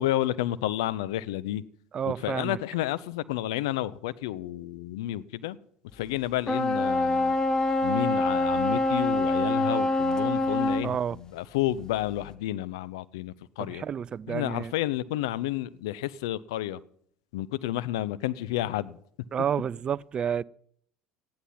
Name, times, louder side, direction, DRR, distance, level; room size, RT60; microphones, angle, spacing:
voice 1, 0.0-1.6 2.0-5.6 5.9-7.4 7.8-13.8 14.3-16.8 17.3-19.0, left 14 dB, 80° left, 0.6 m, -31 dB
voice 2, 1.9-2.6 10.8-11.2 13.6-14.7 19.3-20.4, right 8 dB, 40° right, 0.4 m, -30 dB
sound 1, 6.5-10.9, left 2 dB, 30° left, 1.2 m, -25 dB
14.5 x 10.5 x 5.8 m
hypercardioid pair, 70°, 2 cm